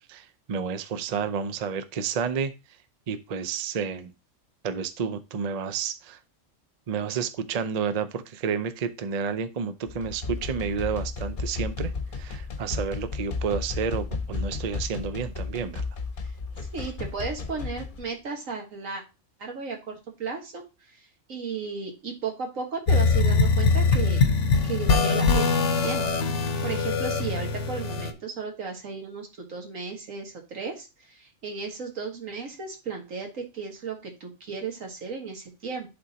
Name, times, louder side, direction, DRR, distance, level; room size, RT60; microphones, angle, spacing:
voice 1, 0.1-2.5 3.1-4.1 4.6-6.2 6.9-15.8, right 6 dB, 45° right, 0.5 m, -30 dB
sound 1, 9.8-18.0, left 4 dB, 45° left, 0.9 m, -33 dB
voice 2, 16.7-19.0 19.4-24.3 24.6-35.9, right 5 dB, 90° right, 1.9 m, -35 dB
digital carpet, 22.9-28.1, left 4 dB, 70° left, 1.1 m, -22 dB
11.0 x 3.9 x 2.8 m
omnidirectional pair, 1.3 m